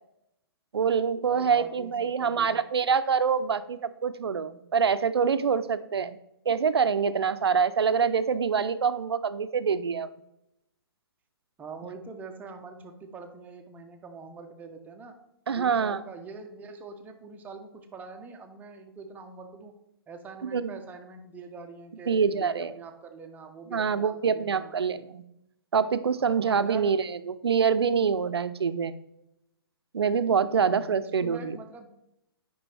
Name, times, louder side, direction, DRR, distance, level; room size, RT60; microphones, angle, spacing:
voice 1, 0.7-6.2 6.5-10.1 15.5-16.0 20.4-20.7 22.1-22.7 23.7-25.2 25.7-29.0 29.9-31.6, right 6 dB, 90° right, 12 dB, 0.6 m, -25 dB
voice 2, 1.2-2.6 11.6-15.2 15.5-19.8 20.1-24.7 26.3-27.0 30.5-31.9, right 4 dB, 15° right, 4 dB, 0.8 m, -44 dB
8.8 x 5.3 x 3.3 m, 0.83 s
hypercardioid pair, 140°, 13 cm